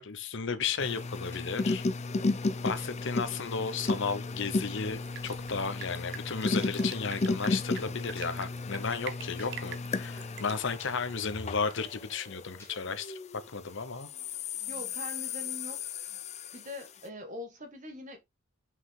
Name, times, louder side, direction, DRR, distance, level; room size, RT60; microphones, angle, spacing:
voice 1, 0.0-1.8 2.6-13.2 13.5-14.1, left 5 dB, 60° left, 0.9 m, -34 dB
sound 1, 0.8-13.4 14.0-16.9, left 3 dB, 35° left, 0.5 m, -34 dB
sound 2, 1.3-1.5 2.8-2.9 3.8-4.0 5.2-5.4 6.6-6.7 8.1-8.3 9.4-9.5 10.8-10.9 12.6-12.7, left 2 dB, 10° left, 2.8 m, -52 dB
Drip, 4.9-11.5, right 8 dB, 55° right, 0.8 m, -47 dB
voice 2, 14.7-15.8 16.5-18.2, left 1 dB, 40° right, 1.8 m, -42 dB
5.9 x 4.9 x 3.7 m
head